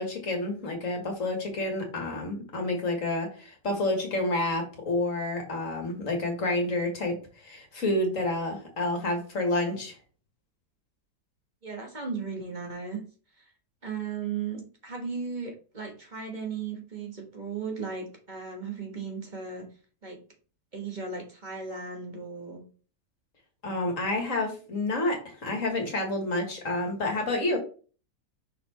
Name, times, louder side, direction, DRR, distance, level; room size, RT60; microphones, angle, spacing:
voice 1, 0.0-9.9 23.6-27.6, left 2 dB, 55° left, 2 dB, 2.1 m, -29 dB
voice 2, 11.6-13.0 13.4-13.5 13.8-19.7 20.0-20.2 20.7-22.6, right 5 dB, 30° right, 2 dB, 1.5 m, -36 dB
6.0 x 4.3 x 4.2 m, 0.37 s
omnidirectional pair, 1.7 m